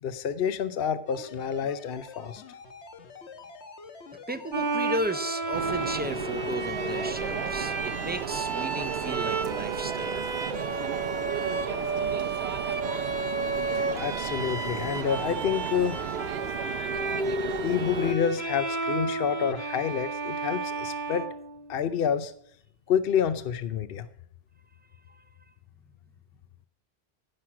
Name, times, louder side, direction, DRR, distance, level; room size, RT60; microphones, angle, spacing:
voice 1, 0.0-2.4 13.9-16.0 17.6-21.3 21.7-22.3 22.9-24.1, left 8 dB, 65° left, 13 dB, 0.9 m, -28 dB
sound 1, 1.1-8.7, left 4 dB, 90° left, 1.4 m, -46 dB
voice 2, 4.3-10.2, right 1 dB, 15° right, 12 dB, 0.4 m, -34 dB
Bowed string instrument, 4.5-21.9, right 3 dB, 45° right, 1.1 m, -32 dB
sound 2, 5.5-18.1, right 8 dB, 70° right, 1.0 m, -34 dB
16.0 x 6.2 x 5.9 m, 0.65 s
omnidirectional pair, 1.1 m